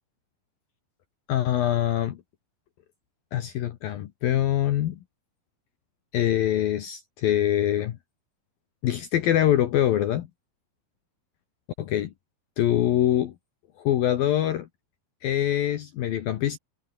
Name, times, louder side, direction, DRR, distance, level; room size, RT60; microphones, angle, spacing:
voice 1, 1.3-2.2 3.3-5.0 6.1-8.0 8.8-10.3 11.8-12.1 12.6-13.3 13.8-14.7 15.2-16.6, left 12 dB, 70° left, 2.2 m, -24 dB
omnidirectional pair, 5.8 m